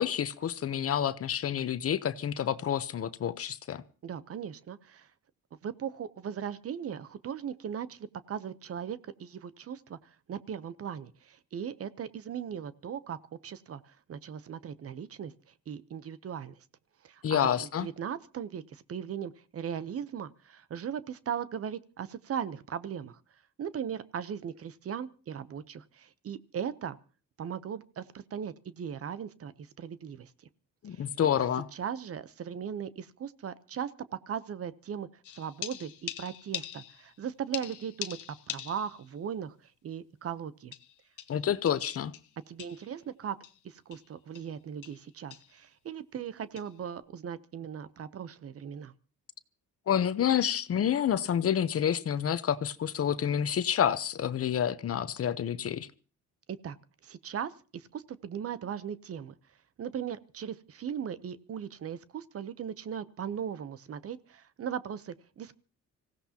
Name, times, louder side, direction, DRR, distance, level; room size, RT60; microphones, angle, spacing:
voice 1, 0.0-3.8 17.2-17.9 30.8-31.7 41.3-42.1 49.9-55.9, left 9 dB, 50° left, 14 dB, 0.9 m, -28 dB
voice 2, 4.0-5.1 5.6-16.5 17.0-23.2 23.6-27.0 27.4-30.3 30.9-31.1 31.7-33.9 34.3-35.1 35.3-39.5 39.8-40.7 42.5-43.4 43.6-48.9 56.5-56.8 57.0-59.3 59.8-65.5, right 8 dB, 50° right, 16 dB, 0.8 m, -38 dB
sound 1, 35.2-37.2 37.5-39.1 39.4-39.5 40.7-42.9 43.4-43.6 43.9-44.0 44.3-44.6 44.8-45.0 45.3-45.6 46.6-46.7, left 12 dB, 85° left, 1.0 m, -42 dB
25.5 x 16.0 x 2.9 m, 0.36 s
cardioid pair, 90°, 30 cm